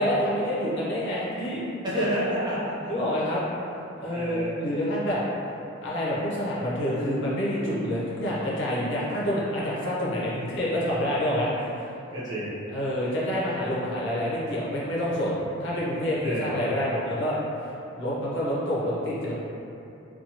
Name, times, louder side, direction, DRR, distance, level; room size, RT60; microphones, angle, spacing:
voice 1, 0.0-1.6 2.9-3.5 4.0-5.2 5.8-11.7 12.7-17.4 18.0-19.3, equal, 60° left, -7 dB, 0.6 m, -27 dB
voice 2, 1.8-2.9 4.1-4.5 12.1-12.6 16.2-16.7, equal, 20° right, -9 dB, 0.5 m, -29 dB
2.6 x 2.2 x 2.9 m, 2.8 s
head